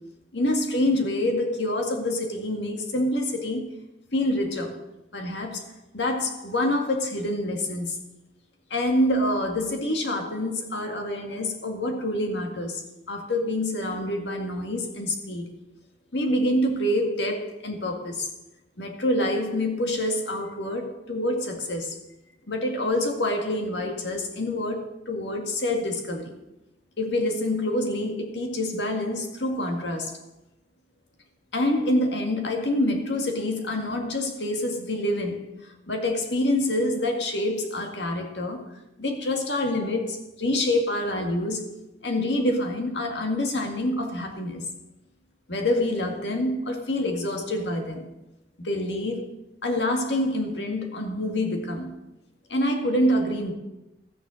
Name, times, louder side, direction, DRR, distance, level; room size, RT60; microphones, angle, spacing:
voice 1, 0.3-3.7 4.1-4.8 5.1-5.6 5.9-8.0 8.7-12.8 13.1-15.5 16.1-18.3 18.8-21.9 22.5-26.4 27.0-30.1 31.5-35.5 35.9-38.6 39.0-41.6 42.0-44.7 45.5-48.1 48.6-49.3 49.6-52.0 52.5-53.5, left 1 dB, 75° left, 3 dB, 2.1 m, -26 dB
14.0 x 6.8 x 6.4 m, 0.91 s
head